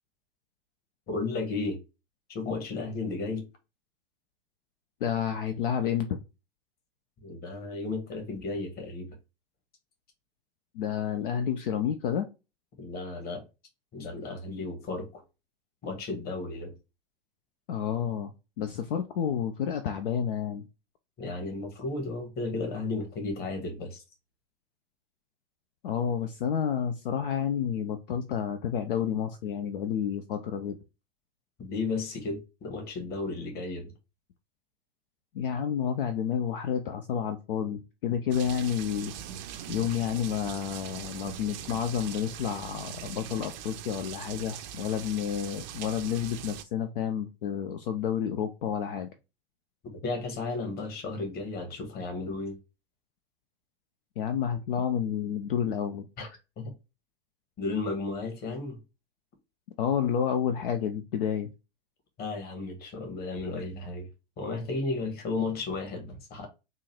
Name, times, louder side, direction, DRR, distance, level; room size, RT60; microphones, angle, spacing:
voice 1, 1.1-1.8 2.3-3.5 7.2-9.2 12.8-13.4 13.9-15.2 15.8-16.7 21.2-24.0 31.6-33.9 49.8-52.6 56.2-56.3 56.6-56.7 57.6-58.8 62.2-64.1 64.4-66.5, left 3 dB, 30° left, 1.5 m, -34 dB
voice 2, 5.0-6.2 10.7-12.3 17.7-18.3 18.6-20.6 25.8-30.8 35.3-39.1 39.7-49.1 54.2-56.1 59.8-61.5, left 8 dB, 60° left, 0.7 m, -30 dB
sound 1, 38.3-46.6, right 10 dB, 45° right, 0.6 m, -41 dB
3.8 x 2.5 x 4.4 m
figure-of-eight pair, 95°, 31 cm